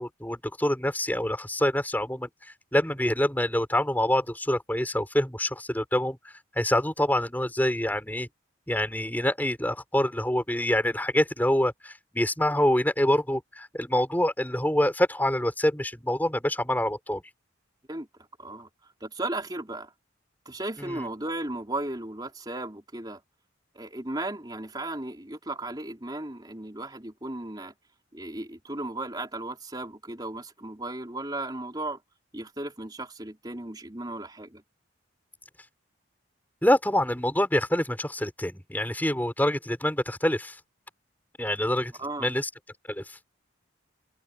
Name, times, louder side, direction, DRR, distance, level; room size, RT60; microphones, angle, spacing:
voice 1, 0.0-2.3 2.7-8.3 8.7-17.2 20.8-21.1 36.6-40.6 41.4-41.9 42.2-42.5 42.9-43.2, left 1 dB, 10° left, 5.1 m, -26 dB
voice 2, 19.0-19.9 20.5-23.2 23.8-27.7 28.1-32.0 32.3-34.6 42.0-42.3, right 2 dB, 20° right, 3.7 m, -35 dB
head